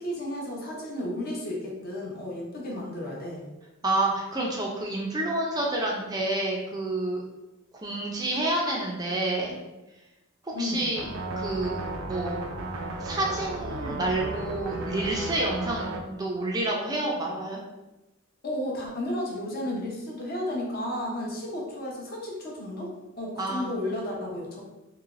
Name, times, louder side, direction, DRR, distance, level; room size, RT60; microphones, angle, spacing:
voice 1, 0.0-3.4 10.5-10.9 18.4-22.9 23.2-24.6, left 1 dB, 45° left, -2 dB, 0.7 m, -33 dB
voice 2, 3.8-7.2 7.7-9.6 10.4-11.1 11.3-11.8 12.1-12.4 13.0-17.6 23.4-23.7, right 2 dB, 20° right, -2 dB, 0.4 m, -29 dB
sound 1, 10.9-16.0, right 2 dB, 80° right, 0.4 m, -34 dB
3.1 x 2.9 x 2.5 m, 1.0 s
head